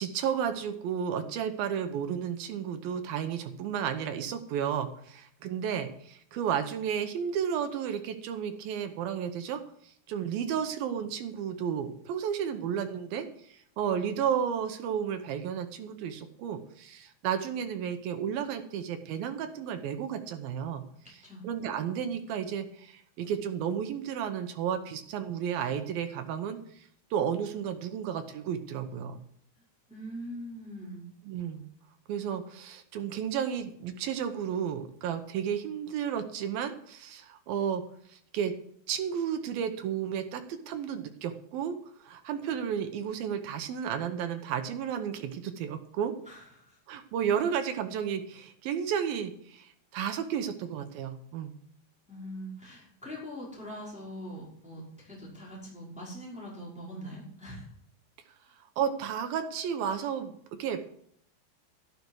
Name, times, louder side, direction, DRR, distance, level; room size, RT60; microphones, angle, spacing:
voice 1, 0.0-20.8 21.4-29.2 31.3-31.7 32.1-37.8 38.1-38.5 38.9-41.7 42.0-46.1 46.9-51.6 58.8-60.3 60.6-60.8, right 8 dB, 70° right, 7 dB, 2.4 m, -32 dB
voice 2, 20.9-21.4 29.9-31.0 46.2-46.8 52.1-57.7, equal, ahead, -5 dB, 4.8 m, -42 dB
12.0 x 12.0 x 4.7 m, 0.67 s
omnidirectional pair, 5.1 m